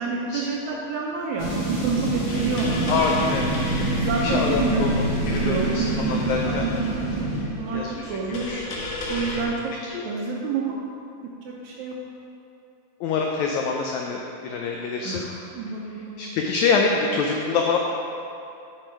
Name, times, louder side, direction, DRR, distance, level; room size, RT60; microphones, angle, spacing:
voice 1, 0.0-3.1 3.8-5.0 5.4-7.1 7.6-7.8 8.1-8.5 9.1-9.6 10.0-10.8 11.4-11.9 15.0-16.2, right 4 dB, 75° right, -3 dB, 1.8 m, -28 dB
Big nuke, 1.4-7.4, right 2 dB, 30° left, 1.2 m, -27 dB
sound 1, 2.3-9.4, left 1 dB, 70° left, 1.3 m, -31 dB
voice 2, 2.9-3.5 4.2-4.9 5.3-6.7 7.7-8.7 9.9-10.0 13.0-15.3 16.2-17.8, left 5 dB, 90° left, 1 dB, 1.6 m, -25 dB
8.9 x 6.2 x 4.6 m, 2.7 s
omnidirectional pair, 4.0 m